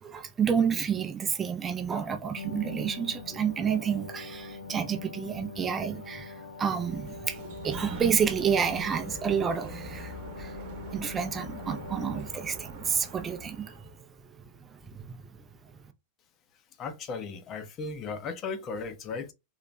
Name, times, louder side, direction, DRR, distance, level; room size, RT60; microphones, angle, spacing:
voice 1, 0.0-10.5 10.9-13.8 14.9-15.2, right 7 dB, 20° right, 0.5 m, -30 dB
sound 1, 2.4-12.2, left 4 dB, 65° left, 1.1 m, -43 dB
Sliding door, 6.8-14.0, right 2 dB, 45° right, 1.0 m, -43 dB
voice 2, 16.8-19.3, left 4 dB, 30° left, 0.7 m, -36 dB
3.9 x 2.9 x 2.3 m
figure-of-eight pair, 90°, 0 cm